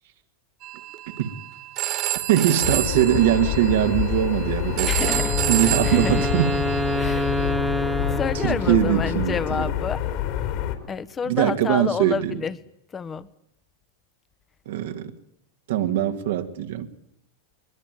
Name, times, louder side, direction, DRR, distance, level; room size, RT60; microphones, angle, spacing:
Telephone, 0.6-7.5, right 15 dB, 50° right, 2.4 m, -30 dB
voice 1, 2.3-5.1 5.5-6.5 8.4-9.6 11.3-12.4 14.7-15.1 15.7-16.9, right 11 dB, 70° right, 2.1 m, -22 dB
sound 1, 2.6-10.8, left 11 dB, 55° left, 3.9 m, -27 dB
voice 2, 4.8-5.4 5.7-6.3 6.9-7.3 8.0-10.0 10.9-12.6 12.9-13.3, left 6 dB, 25° left, 1.3 m, -29 dB
Wind instrument woodwind instrument, 5.0-9.1, equal, ahead, 1.8 m, -27 dB
22.0 x 21.5 x 9.3 m
hypercardioid pair, 100°, 0 cm